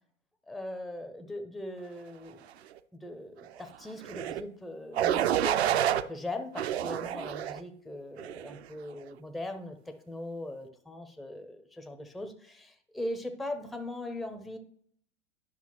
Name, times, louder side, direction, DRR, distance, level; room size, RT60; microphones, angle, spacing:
voice 1, 0.5-2.4 2.9-14.6, left 1 dB, ahead, 7 dB, 0.4 m, -40 dB
sound 1, 4.0-4.4 4.9-6.0 6.6-7.6 8.2-8.6, right 10 dB, 60° right, 0.5 m, -28 dB
10.5 x 5.7 x 2.9 m, 0.62 s
figure-of-eight pair, 90°, 36 cm